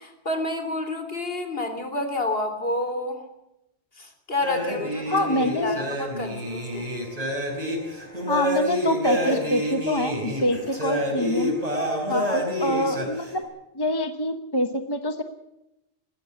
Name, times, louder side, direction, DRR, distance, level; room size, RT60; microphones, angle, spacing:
voice 1, 0.0-3.3 4.0-6.9 10.9-11.1 12.1-12.4, left 2 dB, 55° left, 6 dB, 3.4 m, -29 dB
sound 1, 4.4-13.4, equal, 35° right, 4.9 m, -28 dB
voice 2, 5.1-5.8 8.3-11.5 12.1-13.5 13.7-15.2, left 1 dB, 20° left, 8 dB, 1.1 m, -25 dB
20.0 x 15.5 x 8.4 m, 0.88 s
omnidirectional pair, 1.2 m